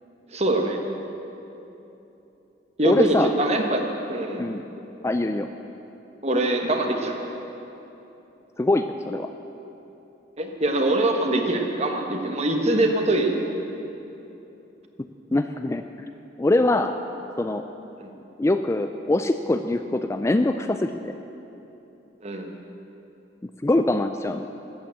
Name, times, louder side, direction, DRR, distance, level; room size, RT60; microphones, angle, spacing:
voice 1, 0.3-0.8 2.8-3.8 4.1-4.5 6.2-7.2 10.4-13.4 18.0-18.1 22.2-22.5, right 1 dB, 35° right, 3 dB, 1.3 m, -23 dB
voice 2, 2.8-3.3 4.4-4.6 5.0-5.5 8.6-9.3 15.3-15.8 16.4-17.0 17.4-17.6 18.4-21.1 23.6-24.4, left 2 dB, 15° left, 8 dB, 0.3 m, -23 dB
13.5 x 8.9 x 8.3 m, 3.0 s
head